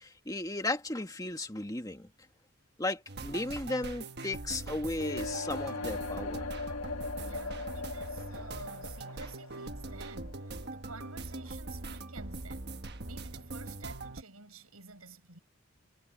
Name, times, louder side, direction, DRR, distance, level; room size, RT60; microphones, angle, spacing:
voice 1, 0.0-2.1 2.8-6.5, left 2 dB, 15° left, 1.9 m, -35 dB
sound 1, 3.1-14.2, right 2 dB, 50° right, 1.3 m, -42 dB
sound 2, 4.9-10.8, left 3 dB, 80° left, 1.5 m, -40 dB
voice 2, 7.2-12.7 13.1-15.4, right 4 dB, 80° right, 7.3 m, -50 dB
head